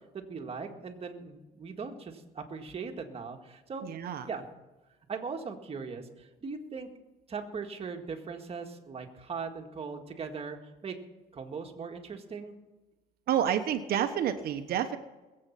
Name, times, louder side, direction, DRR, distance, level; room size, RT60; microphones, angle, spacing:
voice 1, 0.1-3.9 4.3-4.4 5.1-6.9 7.3-10.6 10.8-11.0 11.3-12.5, right 5 dB, 35° right, 4 dB, 1.9 m, -39 dB
voice 2, 3.8-4.3 13.3-15.0, right 9 dB, 65° right, 8 dB, 1.1 m, -29 dB
21.0 x 7.9 x 5.9 m, 1.1 s
cardioid pair, 110°, 17 cm